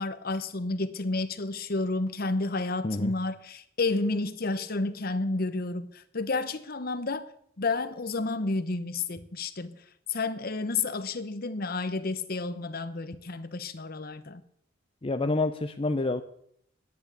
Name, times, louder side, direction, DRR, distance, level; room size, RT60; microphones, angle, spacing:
voice 1, 0.0-7.3 7.6-9.8 10.1-14.4, left 3 dB, 50° left, 1.0 m, -31 dB
voice 2, 15.0-16.2, left 2 dB, 30° left, 0.6 m, -28 dB
10.5 x 9.0 x 8.4 m
head